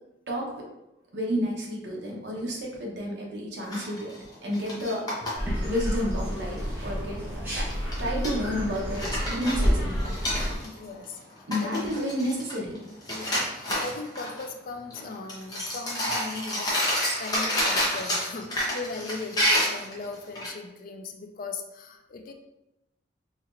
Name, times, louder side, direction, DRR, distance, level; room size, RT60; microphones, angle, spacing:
voice 1, 1.1-4.1 4.4-7.2 7.5-7.7 8.0-10.2 11.5-12.8, equal, 60° right, -2 dB, 0.9 m, -31 dB
sound 1, 3.7-5.3 5.8-5.9 6.1-6.6 7.7-8.3 8.7-10.8 11.2-11.3 11.5-12.8 13.0-14.4 14.9-15.0 15.3-20.5, equal, 20° left, 0.9 m, -29 dB
sound 2, 5.3-10.6, equal, 10° right, 1.1 m, -29 dB
voice 2, 10.6-12.1 13.1-22.3, left 3 dB, 45° left, 5 dB, 0.3 m, -38 dB
4.3 x 2.9 x 2.5 m, 0.92 s
head